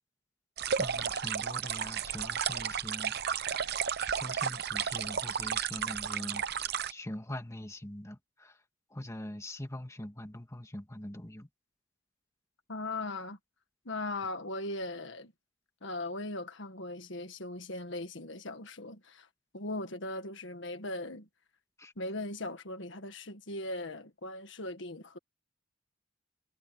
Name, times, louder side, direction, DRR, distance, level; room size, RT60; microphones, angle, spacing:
sound 1, 0.6-6.9, right 8 dB, 55° right, 0.8 m, -33 dB
voice 1, 0.8-3.8 4.0-8.6 8.9-11.5 21.8-21.9, left 1 dB, 15° left, 2.2 m, -43 dB
voice 2, 12.7-13.4 13.9-15.3 15.8-19.3 19.5-21.3 22.0-25.2, left 2 dB, 65° left, 1.7 m, -39 dB
head